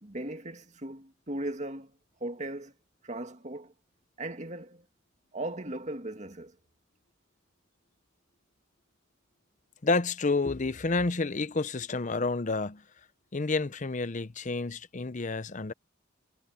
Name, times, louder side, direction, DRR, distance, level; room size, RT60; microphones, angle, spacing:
voice 1, 0.0-1.9 2.2-2.7 3.0-3.7 4.2-4.8 5.3-6.5, right 1 dB, 35° right, 2.1 m, -37 dB
voice 2, 9.8-12.8 13.3-15.7, left 3 dB, 40° left, 0.7 m, -29 dB
head